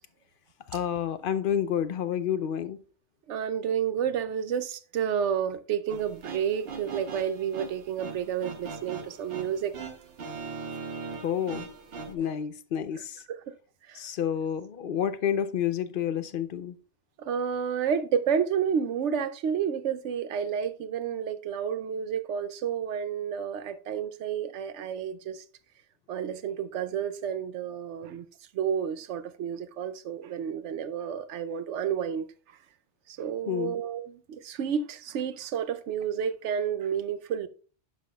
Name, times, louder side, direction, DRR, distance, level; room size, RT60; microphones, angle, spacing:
voice 1, 0.7-2.8 11.2-11.7 12.1-13.2 13.9-16.8 33.5-33.8, left 9 dB, 60° left, 0.7 m, -29 dB
voice 2, 3.3-9.8 12.2-12.3 13.3-13.4 13.9-14.0 17.2-25.4 26.1-28.2 28.5-32.3 33.1-37.5, right 8 dB, 80° right, 0.9 m, -30 dB
sound 1, 5.9-12.1, right 4 dB, 60° right, 1.2 m, -40 dB
11.0 x 5.7 x 2.3 m
omnidirectional pair, 1.2 m